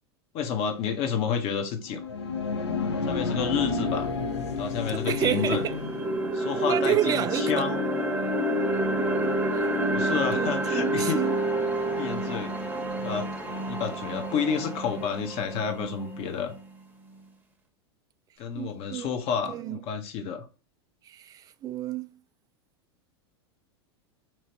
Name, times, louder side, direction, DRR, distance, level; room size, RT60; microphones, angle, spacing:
voice 1, 0.3-2.0 3.0-4.1 4.6-5.6 6.3-7.9 9.9-11.2 11.9-12.5 13.0-13.3 13.6-16.5 18.4-20.5, left 7 dB, 45° left, 0.9 m, -30 dB
sound 1, 1.8-6.5, left 4 dB, 90° left, 0.6 m, -31 dB
sound 2, 3.9-4.0 4.5-16.5, right 1 dB, 10° right, 0.8 m, -29 dB
voice 2, 5.1-5.8 6.6-7.7 9.5-11.4 18.6-19.1 19.5-19.8 21.1-22.1, right 11 dB, 25° right, 0.3 m, -30 dB
3.0 x 2.8 x 2.9 m
hypercardioid pair, 95°, 14 cm